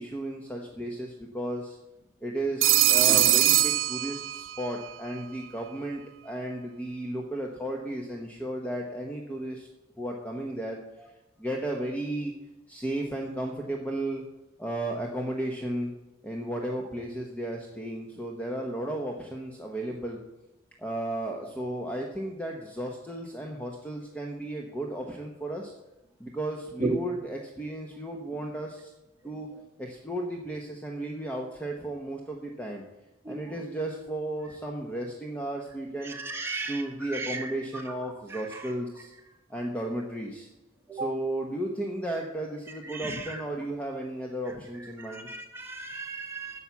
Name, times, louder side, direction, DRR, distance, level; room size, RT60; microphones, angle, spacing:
voice 1, 0.0-1.8 2.2-9.7 10.0-10.8 11.4-12.3 12.7-14.2 14.6-15.9 16.2-20.2 20.8-25.7 26.2-28.9 29.2-29.5 29.8-32.8 33.3-39.1 39.5-40.5 41.0-45.3, right 1 dB, 10° left, 0 dB, 1.0 m, -34 dB
Telephone, 2.6-4.7, right 14 dB, 85° right, 0.6 m, -22 dB
voice 2, 36.0-37.5 38.3-38.7 40.9-41.1 42.8-43.4 45.0-46.6, right 3 dB, 15° right, -1 dB, 2.0 m, -35 dB
10.5 x 7.1 x 7.1 m, 0.98 s
head